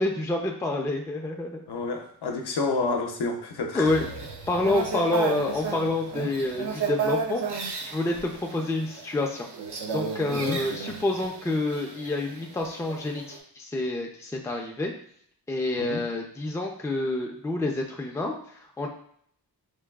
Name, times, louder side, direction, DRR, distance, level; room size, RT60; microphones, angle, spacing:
voice 1, 0.0-1.6 3.7-4.0 4.5-7.4 7.9-9.5 9.9-14.9 15.5-18.3 18.8-18.9, left 2 dB, 10° left, 1 dB, 0.4 m, -28 dB
voice 2, 1.7-3.9 10.3-10.6 15.7-16.0, left 3 dB, 75° left, 3 dB, 0.6 m, -29 dB
sound 1, 3.9-13.4, right 5 dB, 75° right, 0.6 m, -33 dB
4.6 x 2.3 x 2.2 m, 0.64 s
wide cardioid pair, 115°, 40 cm